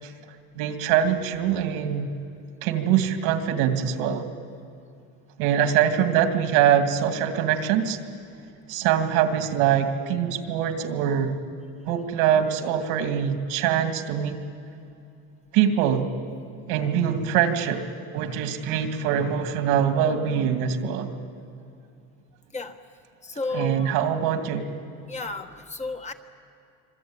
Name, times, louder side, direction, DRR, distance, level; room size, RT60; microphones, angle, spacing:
voice 1, 0.6-2.1 2.6-4.2 5.4-8.0 8.7-11.4 11.8-14.4 15.5-16.1 16.7-17.9 18.1-21.1 23.5-24.7, right 9 dB, 85° right, 6 dB, 2.3 m, -23 dB
voice 2, 23.2-23.9 25.1-26.1, left 3 dB, 20° left, 6 dB, 1.5 m, -32 dB
26.0 x 22.5 x 8.9 m, 2.6 s
cardioid pair, 135°, 33 cm